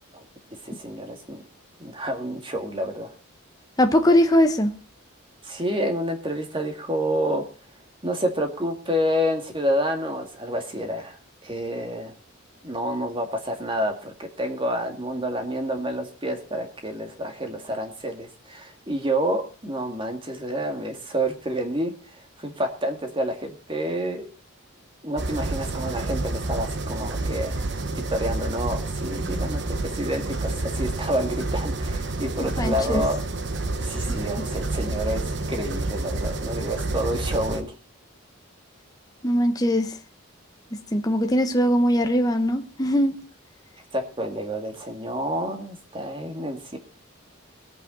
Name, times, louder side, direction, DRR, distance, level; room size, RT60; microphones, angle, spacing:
voice 1, 0.6-1.4 1.8-3.1 5.4-7.5 8.0-12.1 12.6-21.9 22.4-24.3 25.0-27.6 27.9-33.2 33.8-37.7 43.9-46.8, equal, 25° right, 2.0 m, -28 dB
voice 2, 3.8-4.8 32.6-33.0 39.2-39.9 40.9-43.2, equal, 15° left, 1.1 m, -21 dB
sound 1, 25.2-37.6, right 2 dB, 55° right, 1.2 m, -29 dB
22.0 x 8.4 x 3.9 m
head